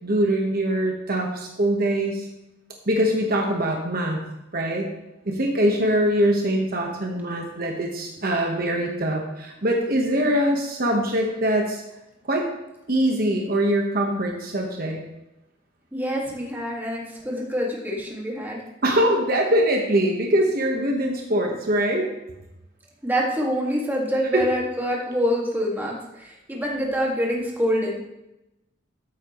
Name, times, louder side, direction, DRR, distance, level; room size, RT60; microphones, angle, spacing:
voice 1, 0.0-2.3 2.9-4.2 4.5-4.9 5.3-11.8 12.3-12.5 12.9-15.0 18.8-22.1 24.3-24.4, right 1 dB, 50° right, 1 dB, 1.2 m, -23 dB
voice 2, 15.9-18.6 23.0-28.0, equal, 10° right, -3 dB, 1.9 m, -26 dB
13.5 x 8.4 x 3.1 m, 0.93 s
head